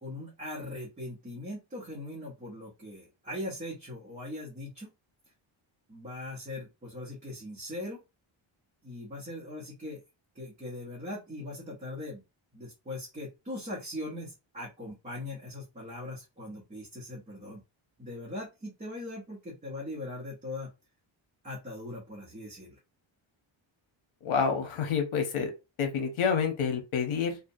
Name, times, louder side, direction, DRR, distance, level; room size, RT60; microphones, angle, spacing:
voice 1, 0.0-4.9 5.9-8.0 8.8-10.0 10.3-12.2 12.5-17.6 18.0-20.7 21.4-22.8, left 1 dB, 15° right, -5 dB, 0.7 m, -40 dB
voice 2, 24.2-25.5 25.8-27.4, left 6 dB, 80° left, 5 dB, 0.9 m, -28 dB
2.7 x 2.1 x 2.6 m, 0.26 s
wide cardioid pair, 160°, 49 cm